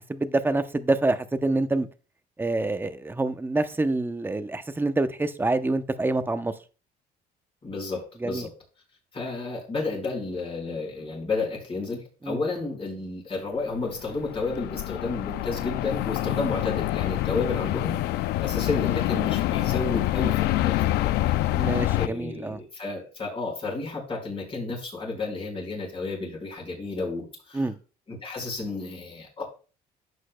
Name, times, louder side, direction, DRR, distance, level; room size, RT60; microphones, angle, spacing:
voice 1, 0.1-1.9 2.4-6.5 8.2-8.5 12.2-12.4 16.2-16.4 21.5-22.6 27.5-27.8, right 2 dB, 10° right, 0.7 m, -26 dB
voice 2, 7.6-8.5 9.1-18.0 18.4-21.3 21.6-21.7 21.9-27.6 28.1-29.4, left 3 dB, 35° left, 4.6 m, -32 dB
sound 1, 13.8-22.1, left 16 dB, 80° left, 0.4 m, -26 dB
11.5 x 8.1 x 2.2 m
cardioid pair, 110°, 17 cm